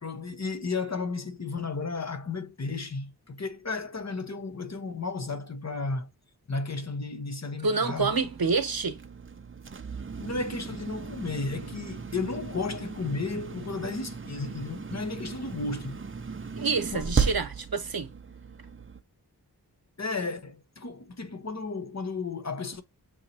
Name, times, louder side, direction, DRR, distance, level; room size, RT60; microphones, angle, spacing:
voice 1, 0.0-6.1 6.5-8.1 10.2-16.0 16.9-17.2 20.0-22.8, left 3 dB, 40° left, 0.9 m, -33 dB
voice 2, 7.6-9.0 16.6-18.1, right 4 dB, 65° right, 1.0 m, -27 dB
sound 1, 8.0-19.0, right 5 dB, 30° right, 0.6 m, -36 dB
6.3 x 2.9 x 2.8 m
wide cardioid pair, 75°, 39 cm